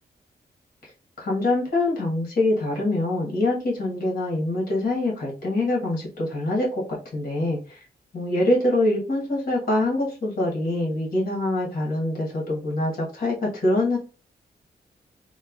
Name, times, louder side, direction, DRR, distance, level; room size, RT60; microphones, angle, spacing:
voice 1, 1.2-7.8 8.1-14.0, left 1 dB, 55° left, -3 dB, 1.2 m, -24 dB
3.0 x 2.0 x 2.3 m, 0.34 s
wide cardioid pair, 115°, 17 cm